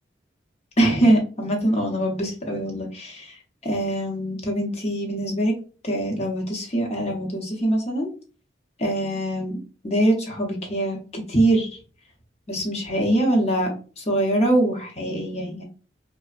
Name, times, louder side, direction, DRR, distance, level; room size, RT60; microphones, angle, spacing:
voice 1, 0.8-5.5 5.8-8.1 8.8-9.6 9.8-11.8 12.5-15.6, right 1 dB, 35° left, 0 dB, 0.7 m, -23 dB
3.3 x 2.0 x 2.4 m, 0.37 s
head